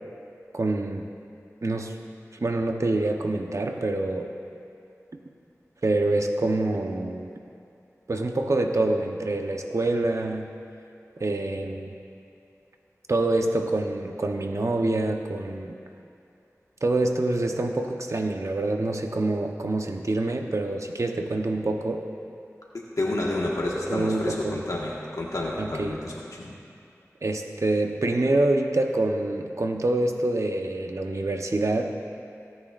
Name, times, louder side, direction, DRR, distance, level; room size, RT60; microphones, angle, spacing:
voice 1, 0.5-1.1 1.6-1.9 2.4-4.3 5.8-7.3 8.1-10.5 11.2-11.9 13.1-15.8 16.8-22.0 23.9-24.6 25.6-26.0 27.2-31.9, right 2 dB, 65° right, 3 dB, 0.9 m, -26 dB
voice 2, 22.7-26.6, left 1 dB, 85° left, -4 dB, 1.6 m, -30 dB
25.0 x 9.3 x 2.5 m, 2.6 s
wide cardioid pair, 55°, 6 cm